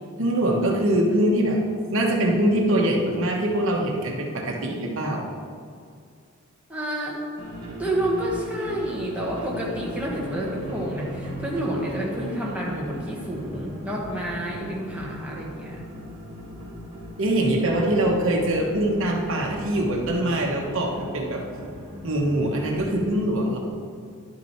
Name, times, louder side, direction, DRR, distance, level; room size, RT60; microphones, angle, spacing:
voice 1, 0.2-1.6 1.9-5.3 17.2-21.4 22.0-23.6, right 1 dB, 60° right, 0 dB, 1.1 m, -23 dB
voice 2, 6.7-7.2 7.8-15.9, right 1 dB, 5° right, -4 dB, 1.3 m, -29 dB
sound 1, 7.4-23.0, equal, 20° right, 2.3 m, -38 dB
11.0 x 6.0 x 4.5 m, 2.2 s
head